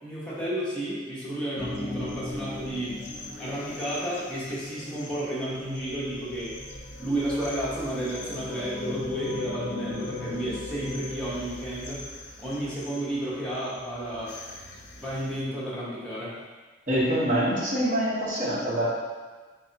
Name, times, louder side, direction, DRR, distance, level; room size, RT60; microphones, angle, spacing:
voice 1, 0.0-3.0 3.4-6.6 7.0-12.0 12.4-14.4 15.0-16.4, right 1 dB, 5° left, -9 dB, 0.8 m, -32 dB
sound 1, 1.6-15.4, left 2 dB, 60° left, 0.5 m, -39 dB
voice 2, 16.9-18.9, equal, 40° right, -8 dB, 1.0 m, -25 dB
3.5 x 3.3 x 2.8 m, 1.4 s
head